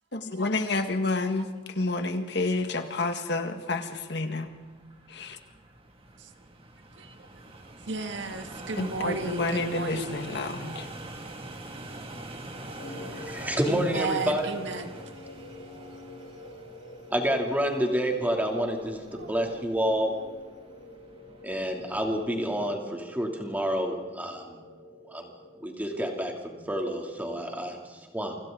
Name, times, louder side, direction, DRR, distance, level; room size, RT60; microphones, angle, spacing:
voice 1, 0.1-4.5 5.1-5.4 8.8-10.9, left 2 dB, 65° left, 1.9 m, -29 dB
sound 1, 4.1-22.4, right 2 dB, 30° right, 2.4 m, -45 dB
voice 2, 7.0-7.3 7.9-10.1 13.7-14.9 19.1-19.4, right 3 dB, 75° right, 1.8 m, -34 dB
sound 2, 12.8-26.2, left 2 dB, 80° left, 3.5 m, -47 dB
voice 3, 12.9-14.5 17.1-20.1 21.4-24.6 25.1-25.3 25.6-28.3, equal, 10° right, 3.1 m, -29 dB
29.0 x 26.0 x 4.0 m
head